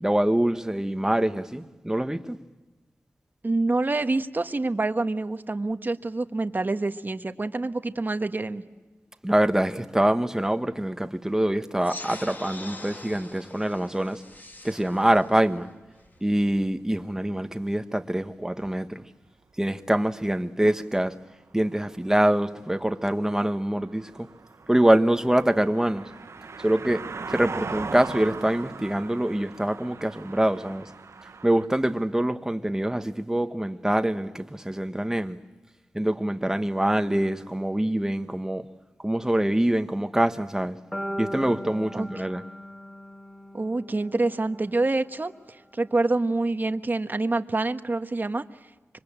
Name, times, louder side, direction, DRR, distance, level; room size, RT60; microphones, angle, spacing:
voice 1, 0.0-2.4 9.2-14.2 14.6-15.7 16.2-19.0 19.6-21.1 21.5-24.3 24.7-26.0 26.6-27.0 27.3-30.9 31.4-35.4 35.9-38.6 39.0-40.8 41.2-42.4, right 1 dB, 10° right, 1.3 m, -24 dB
voice 2, 3.4-8.6 20.7-20.8 41.9-42.1 43.5-48.4, right 2 dB, 40° right, 1.3 m, -26 dB
sound 1, 11.8-16.8, left 1 dB, 40° left, 2.5 m, -43 dB
sound 2, 17.3-17.5 18.2-18.3 18.6-18.8 21.2-21.3 21.5-31.7, right 4 dB, 70° right, 1.0 m, -40 dB
sound 3, 40.9-45.0, equal, 10° left, 2.4 m, -38 dB
26.5 x 23.5 x 8.9 m
wide cardioid pair, 70°, 5 cm